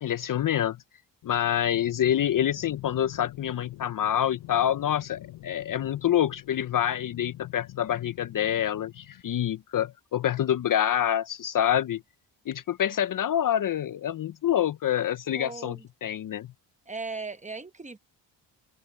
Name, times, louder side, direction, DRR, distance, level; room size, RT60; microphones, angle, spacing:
voice 1, 0.0-0.8 1.2-12.0 12.5-16.5, left 10 dB, 45° left, 0.6 m, -27 dB
sound 1, 1.2-9.2, left 17 dB, 80° left, 0.8 m, -46 dB
voice 2, 15.3-15.9 16.9-18.0, right 3 dB, 15° right, 1.0 m, -37 dB
cardioid pair, 95°, 44 cm